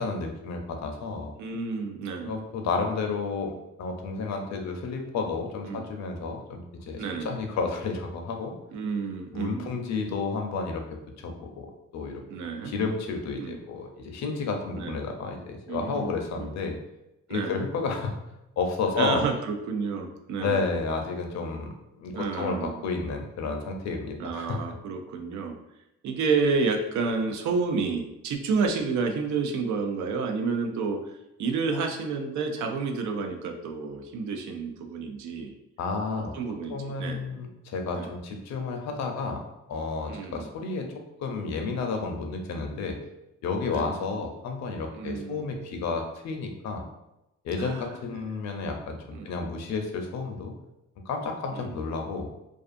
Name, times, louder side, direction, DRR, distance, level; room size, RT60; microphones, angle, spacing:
voice 1, 0.0-1.3 2.2-8.5 9.3-10.8 11.2-11.7 11.9-12.2 12.6-16.8 17.3-18.1 18.6-19.3 20.4-21.7 22.0-24.6 35.8-36.3 36.7-39.4 39.7-43.0 43.4-46.8 47.4-50.5 51.1-52.3, left 4 dB, 65° left, 3 dB, 0.5 m, -31 dB
voice 2, 1.4-2.4 5.7-5.9 7.0-7.4 8.7-9.7 12.3-12.7 13.4-13.6 14.8-15.0 15.7-16.6 17.3-17.6 18.9-20.6 22.1-22.8 24.2-25.6 26.0-31.1 31.4-35.5 36.2-37.2 37.9-38.1 40.1-40.5 43.7-43.9 44.9-45.5 47.6-48.3 49.1-49.3 51.5-51.8, right 4 dB, 75° right, 4 dB, 0.5 m, -30 dB
2.4 x 2.4 x 2.5 m, 0.90 s
cardioid pair, 90°, 30 cm